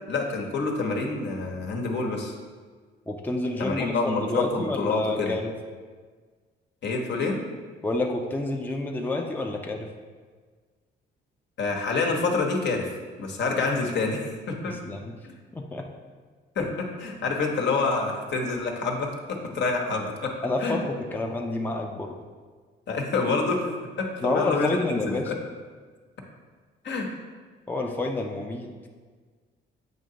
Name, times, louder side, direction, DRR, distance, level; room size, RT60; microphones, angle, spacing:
voice 1, 0.1-2.3 3.6-5.3 6.8-7.4 11.6-14.8 15.2-15.3 16.5-20.3 20.6-20.8 22.9-23.7 24.0-25.3 26.8-27.1, left 3 dB, 60° left, 1 dB, 1.1 m, -27 dB
voice 2, 3.1-5.5 7.8-9.9 14.7-15.2 15.5-15.9 20.4-22.1 24.2-25.3 27.7-28.7, left 2 dB, 10° left, 1 dB, 0.5 m, -29 dB
7.9 x 2.8 x 5.1 m, 1.5 s
cardioid pair, 90°, 20 cm